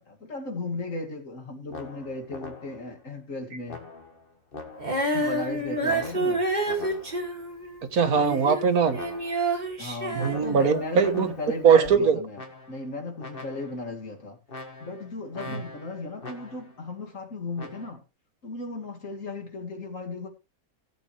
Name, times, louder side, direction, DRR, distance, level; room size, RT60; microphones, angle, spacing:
voice 1, 0.0-3.8 5.1-6.5 9.8-12.4 12.7-14.4 14.8-18.0 18.4-20.3, left 3 dB, 60° left, 2.8 m, -36 dB
sound 1, 1.7-3.0 3.7-5.2 5.9-7.4 8.0-9.6 10.2-11.6 12.3-12.9 13.2-13.9 14.5-16.8 17.6-17.9, left 3 dB, 40° left, 2.1 m, -42 dB
Female singing, 4.8-11.2 11.8-11.9, right 2 dB, 30° right, 2.5 m, -29 dB
voice 2, 7.9-9.0 10.1-11.3 11.6-12.2 15.5-15.6, right 6 dB, 85° right, 1.7 m, -21 dB
16.0 x 8.4 x 3.3 m
omnidirectional pair, 1.5 m